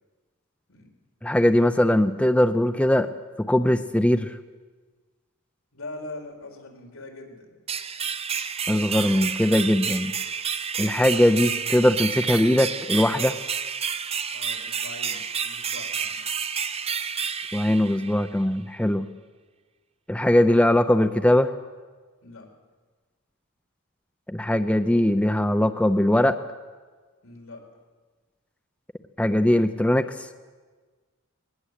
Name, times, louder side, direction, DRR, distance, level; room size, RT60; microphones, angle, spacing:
voice 1, 1.2-3.1 3.4-4.4 8.7-10.1 10.8-13.4 17.5-19.1 20.1-21.5 24.3-26.4 29.2-30.1, left 1 dB, 5° left, 8 dB, 0.6 m, -20 dB
voice 2, 5.7-7.6 14.3-16.2 22.2-22.5 27.2-27.6, left 2 dB, 75° left, 2 dB, 4.2 m, -42 dB
sound 1, 7.7-18.4, right 6 dB, 30° right, 0.7 m, -30 dB
20.0 x 18.5 x 8.3 m, 1.4 s
head